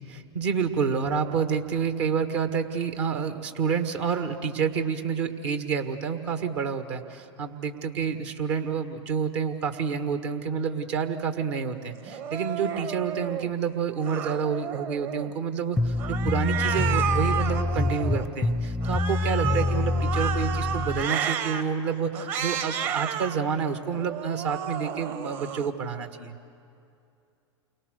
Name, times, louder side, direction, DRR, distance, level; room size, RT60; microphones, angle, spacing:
voice 1, 0.1-26.4, right 6 dB, 70° right, 7 dB, 1.7 m, -29 dB
Cat, 12.1-13.5 14.0-15.4 16.0-18.3 18.8-21.6 22.1-23.4 23.9-25.7, right 8 dB, 50° right, 1.4 m, -32 dB
sound 1, 15.8-21.1, left 2 dB, ahead, 0.5 m, -26 dB
29.0 x 23.5 x 6.6 m, 2.6 s
hypercardioid pair, 95°, 15 cm